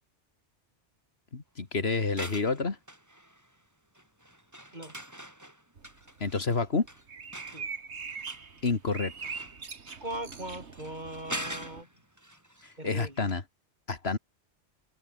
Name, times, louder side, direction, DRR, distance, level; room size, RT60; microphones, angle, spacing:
voice 1, 1.3-2.8 6.2-6.9 8.6-9.1 12.8-13.4 13.9-14.2, left 4 dB, 65° left, 2.3 m, -28 dB
sound 1, 2.0-3.6 3.9-13.0 13.3-13.4, equal, 15° right, 5.2 m, -44 dB
sound 2, 5.8-11.8, right 5 dB, 75° right, 1.9 m, -42 dB
voice 2, 10.0-11.9 12.8-13.3, right 1 dB, 40° right, 5.4 m, -39 dB
open air
omnidirectional pair, 1.1 m